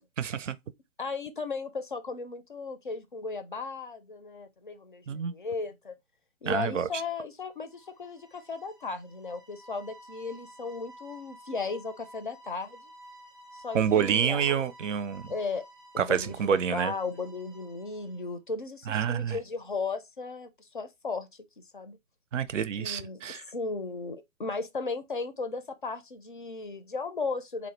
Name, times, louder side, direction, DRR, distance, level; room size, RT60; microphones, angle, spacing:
voice 1, 0.2-0.6 5.1-5.3 6.5-6.9 13.7-15.3 16.0-16.9 18.9-19.4 22.3-23.4, right 8 dB, 65° right, 0.5 m, -27 dB
voice 2, 1.0-5.9 6.4-12.9 13.5-14.4 15.3-15.6 15.9-21.3 21.7-22.0 22.8-27.7, left 4 dB, 40° left, 0.4 m, -36 dB
sound 1, 7.5-18.3, right 1 dB, 15° right, 0.5 m, -52 dB
3.7 x 2.0 x 3.1 m
figure-of-eight pair, 140°, 41 cm